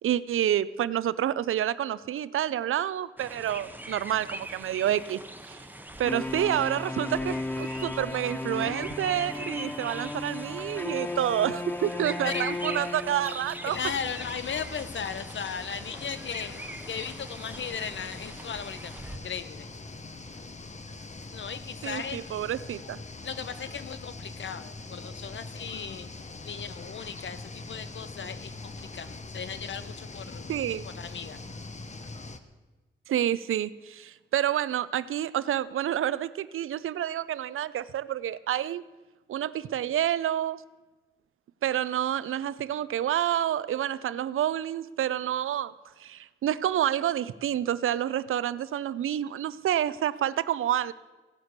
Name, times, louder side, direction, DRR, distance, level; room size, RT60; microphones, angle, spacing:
voice 1, 0.0-5.2 5.5-5.7 6.0-13.8 21.8-23.0 30.5-30.8 33.1-38.8 39.3-40.6 41.6-45.7 46.0-50.9, right 11 dB, 85° right, 17 dB, 0.5 m, -28 dB
sound 1, 3.2-19.2, right 1 dB, 10° right, 1.3 m, -42 dB
sound 2, 6.0-13.8, left 2 dB, 10° left, 0.4 m, -35 dB
voice 2, 13.7-16.6 16.9-19.7 21.3-22.4 23.2-26.1 26.4-30.4 31.0-31.4, left 6 dB, 65° left, 13 dB, 0.9 m, -37 dB
sound 3, 13.7-32.4, left 3 dB, 35° left, 1.1 m, -42 dB
16.0 x 5.9 x 8.0 m, 1.2 s
cardioid pair, 60°, 21 cm